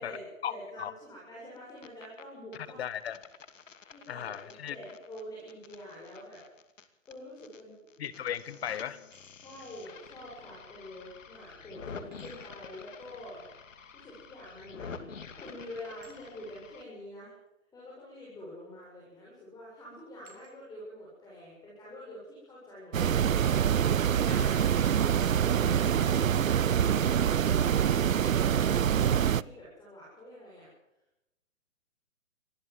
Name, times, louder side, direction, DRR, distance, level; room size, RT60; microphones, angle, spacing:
voice 1, 0.0-3.0 3.9-6.4 7.1-7.8 9.4-13.4 13.9-15.1 15.4-17.3 17.7-23.2 24.7-26.1 26.4-30.7, left 1 dB, 10° left, -6 dB, 7.1 m, -46 dB
sound 1, 1.6-2.2 2.5-7.6 7.9-16.8, left 5 dB, 70° left, 2.6 m, -48 dB
voice 2, 2.8-3.2 4.1-4.8 8.0-9.0 24.3-25.2, left 9 dB, 50° left, 15 dB, 1.7 m, -37 dB
sound 2, 8.9-9.3 10.9-11.0 12.1-12.5 14.8-15.1 16.0-16.3 17.5-17.6 18.8-19.0 19.3-19.6 20.2-20.6 23.0-23.3 24.1-24.2 25.2-25.5, right 6 dB, 40° right, 5.9 m, -60 dB
sound 3, 22.9-29.4, right 9 dB, 85° right, 0.7 m, -25 dB
24.5 x 15.0 x 7.7 m, 0.88 s
hypercardioid pair, 150°, 39 cm